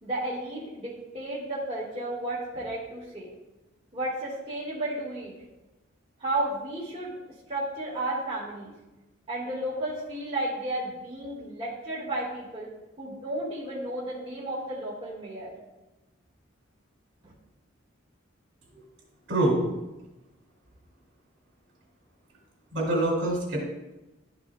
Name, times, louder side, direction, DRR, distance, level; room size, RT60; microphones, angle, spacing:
voice 1, 0.0-3.3 3.9-5.3 6.2-7.1 7.5-8.7 9.3-12.7 13.0-15.5 17.2-17.3, right 1 dB, 30° right, -7 dB, 1.8 m, -33 dB
voice 2, 19.3-19.7 22.7-23.6, right 1 dB, 60° right, -2 dB, 2.6 m, -25 dB
12.0 x 5.9 x 2.3 m, 1.0 s
head